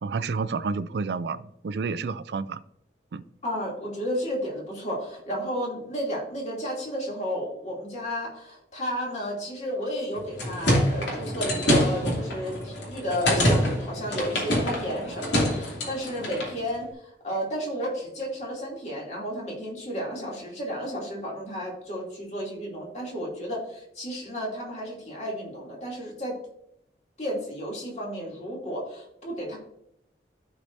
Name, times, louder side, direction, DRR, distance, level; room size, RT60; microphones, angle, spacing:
voice 1, 0.0-2.6 3.1-3.2, right 4 dB, 70° right, 14 dB, 0.4 m, -30 dB
voice 2, 3.4-26.4 27.2-29.6, equal, 40° left, -3 dB, 2.7 m, -32 dB
soccer table movement, 10.2-16.6, equal, 80° left, 2.7 m, -26 dB
14.5 x 4.9 x 2.6 m, 0.78 s
head